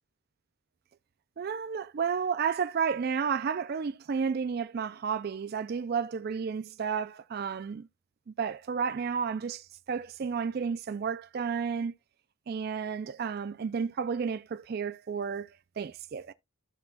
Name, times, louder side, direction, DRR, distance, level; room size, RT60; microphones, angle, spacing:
voice 1, 1.4-7.9 8.4-11.9 12.5-15.5 15.8-16.3, right 6 dB, 45° right, 0.3 m, -32 dB
14.0 x 4.6 x 2.3 m
head